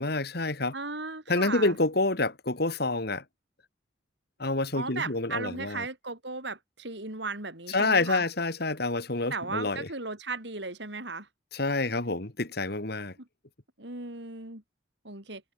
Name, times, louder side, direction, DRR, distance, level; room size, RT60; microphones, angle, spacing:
voice 1, 0.0-0.7 1.3-3.2 4.4-5.8 7.7-9.9 11.5-13.1, left 2 dB, 55° left, 2.4 m, -28 dB
voice 2, 0.7-1.8 4.7-8.2 9.3-11.3 13.8-14.6 15.0-15.4, right 3 dB, 65° right, 5.2 m, -36 dB
head